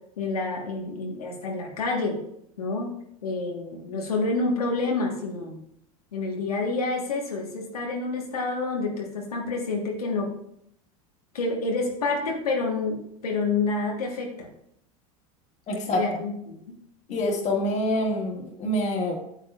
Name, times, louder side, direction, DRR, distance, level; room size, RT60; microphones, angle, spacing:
voice 1, 0.2-2.2 2.6-2.9 3.2-5.6 6.1-10.3 11.3-14.5 15.9-16.8 17.1-17.2, left 3 dB, 90° left, -1 dB, 1.5 m, -28 dB
voice 2, 15.7-16.1 17.1-19.2, left 1 dB, 40° left, 1 dB, 2.0 m, -26 dB
8.8 x 7.6 x 2.5 m, 0.73 s
hypercardioid pair, 90°, 19 cm